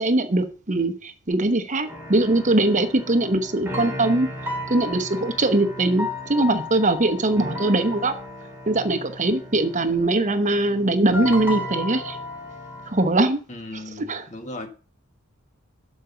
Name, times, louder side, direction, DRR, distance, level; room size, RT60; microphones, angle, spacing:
voice 1, 0.0-4.3 4.7-8.2 8.7-12.2 12.9-13.4 14.1-14.2, right 2 dB, 35° right, 1.0 m, -21 dB
sound 1, 1.9-13.1, left 1 dB, 10° right, 3.5 m, -34 dB
voice 2, 13.5-14.7, left 2 dB, 35° left, 1.6 m, -36 dB
12.0 x 5.0 x 6.8 m
head